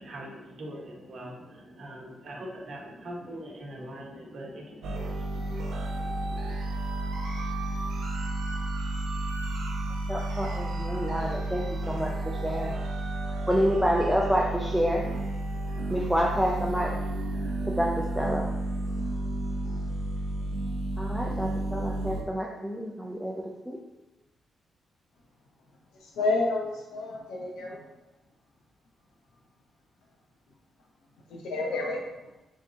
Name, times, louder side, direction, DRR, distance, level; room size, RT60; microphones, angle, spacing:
voice 1, 0.0-6.6, right 1 dB, 60° right, -1 dB, 0.9 m, -43 dB
sound 1, 4.8-22.2, right 1 dB, 80° right, 0.5 m, -31 dB
voice 2, 10.1-12.8 13.5-15.0 15.9-17.0 17.6-18.5 21.0-23.8, equal, ahead, -2 dB, 0.5 m, -28 dB
voice 3, 26.0-27.8 31.3-32.0, left 2 dB, 85° left, -1 dB, 0.8 m, -29 dB
3.5 x 3.5 x 2.7 m, 1.0 s
cardioid pair, 75°, 0 cm